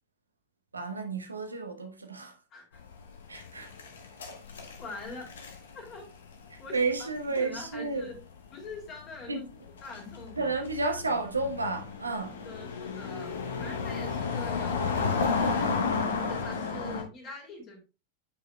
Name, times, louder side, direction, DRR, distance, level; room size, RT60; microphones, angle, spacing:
voice 1, 0.7-2.3 3.3-3.7 6.5-8.1 9.3-9.4 10.4-12.4, right 3 dB, 80° right, 0.9 m, -31 dB
voice 2, 2.5-2.8 4.8-5.3 5.7-6.1 6.6-7.1 7.4-8.2 8.5-9.5 9.8-10.6 12.3-15.8 16.1-17.8, left 3 dB, 35° left, 2.6 m, -44 dB
sound 1, 2.8-8.4 8.7-8.8 9.5-17.0, left 5 dB, 65° left, 1.0 m, -33 dB
8.6 x 4.9 x 2.2 m
figure-of-eight pair, 90°, 0 cm